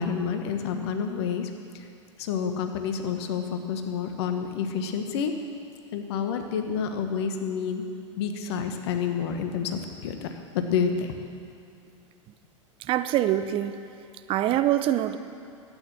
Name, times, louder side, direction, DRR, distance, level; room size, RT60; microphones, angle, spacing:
voice 1, 0.0-1.5 1.7-1.8 2.2-5.3 5.9-7.8 8.2-10.3 10.5-11.2, left 7 dB, 55° left, 5 dB, 1.3 m, -29 dB
voice 2, 12.9-13.8 14.3-15.2, right 12 dB, 35° right, 11 dB, 0.7 m, -24 dB
12.0 x 9.2 x 7.3 m, 2.6 s
figure-of-eight pair, 95°, 16 cm